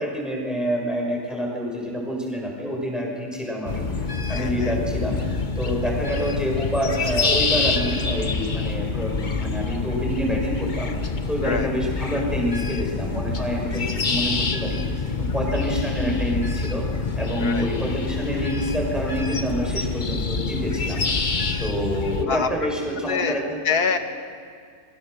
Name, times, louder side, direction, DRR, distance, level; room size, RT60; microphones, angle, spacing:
voice 1, 0.0-5.2 5.5-10.9 11.3-21.0 21.6-23.6, equal, ahead, -1 dB, 6.3 m, -27 dB
sound 1, 3.7-22.3, left 4 dB, 30° left, 1.2 m, -26 dB
voice 2, 4.3-4.8 11.4-11.7 17.4-17.7 22.3-22.5 23.1-23.4 23.6-24.0, left 6 dB, 70° left, 6 dB, 2.0 m, -25 dB
27.0 x 24.0 x 6.8 m, 2.2 s
omnidirectional pair, 1.7 m